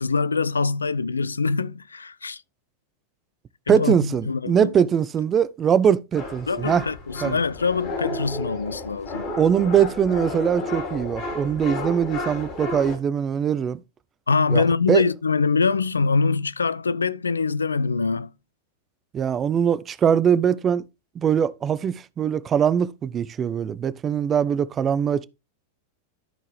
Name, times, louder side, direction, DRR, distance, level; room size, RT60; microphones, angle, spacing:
voice 1, 0.0-2.4 3.7-4.7 6.5-9.3 14.3-18.3, left 4 dB, 75° left, 0.4 m, -24 dB
voice 2, 3.7-6.8 7.2-7.4 9.4-13.8 14.5-15.0 19.1-20.8 21.2-25.2, right 8 dB, 25° right, 0.6 m, -22 dB
sound 1, 6.1-13.0, left 2 dB, 40° left, 3.5 m, -32 dB
13.0 x 4.7 x 3.2 m
figure-of-eight pair, 90°, 0 cm